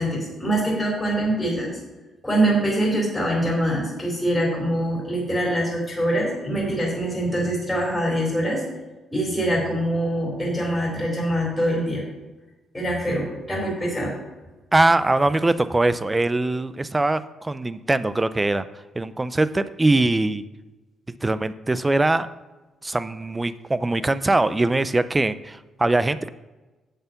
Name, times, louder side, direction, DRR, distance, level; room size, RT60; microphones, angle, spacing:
voice 1, 0.0-1.7 2.2-8.6 9.1-12.0 12.7-14.1, right 1 dB, 5° left, -4 dB, 3.8 m, -24 dB
voice 2, 14.7-18.6 18.9-20.4 21.2-22.3 22.8-26.3, right 2 dB, 15° right, 14 dB, 0.5 m, -22 dB
8.2 x 7.5 x 5.8 m, 1.1 s
cardioid pair, 90°, 0 cm